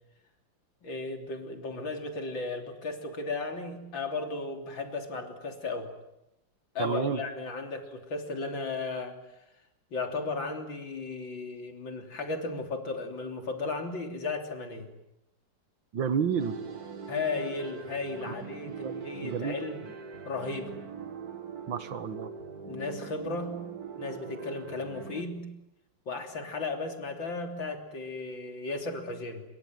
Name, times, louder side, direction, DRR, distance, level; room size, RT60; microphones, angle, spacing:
voice 1, 0.8-5.9 6.7-9.2 9.9-14.9 17.1-19.8 20.3-20.7 22.6-23.7 24.0-25.5 26.1-29.4, left 3 dB, 85° left, 4 dB, 4.1 m, -35 dB
voice 2, 6.8-7.2 15.9-16.5 18.2-18.3 18.7-18.9 19.2-19.6 21.7-22.3, right 7 dB, 85° right, 11 dB, 2.3 m, -30 dB
sound 1, 16.4-25.2, right 5 dB, 55° right, 2.1 m, -42 dB
26.5 x 24.0 x 9.4 m, 0.92 s
omnidirectional pair, 2.0 m